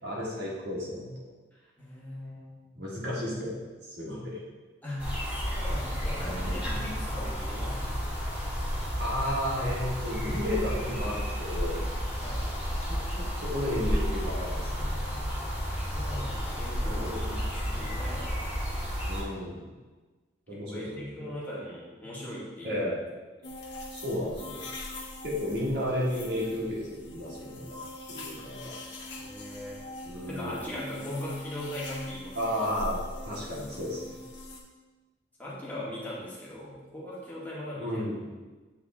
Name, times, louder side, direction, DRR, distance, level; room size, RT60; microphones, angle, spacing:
voice 1, 0.0-1.1 2.8-4.4 6.1-6.8 9.0-11.9 12.9-14.9 16.8-17.3 19.1-19.7 20.5-21.3 22.6-23.0 23.9-24.6 25.2-27.8 28.1-28.7 30.0-30.7 32.4-34.2 37.8-38.3, left 1 dB, 65° right, -6 dB, 1.9 m, -33 dB
voice 2, 1.5-2.9 4.8-8.2 12.2-12.5 15.4-18.5 20.5-22.8 29.1-29.8 30.2-32.5 35.4-38.0, left 1 dB, 10° left, -7 dB, 1.6 m, -40 dB
sound 1, 5.0-19.2, equal, 5° right, 1.5 m, -32 dB
sound 2, 23.4-34.6, left 1 dB, 80° left, 1.1 m, -42 dB
8.2 x 3.7 x 3.6 m, 1.3 s
head